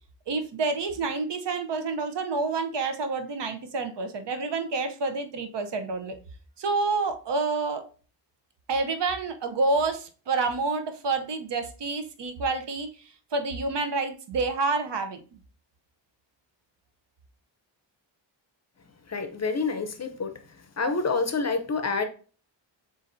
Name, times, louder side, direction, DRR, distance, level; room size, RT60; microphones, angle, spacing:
voice 1, 0.3-6.2 6.6-7.8 8.7-12.9 13.3-15.2, right 3 dB, 65° right, 0.7 m, -28 dB
voice 2, 19.1-20.3 20.8-22.0, left 4 dB, 35° left, 0.6 m, -27 dB
7.0 x 2.6 x 2.6 m
wide cardioid pair, 100°, 46 cm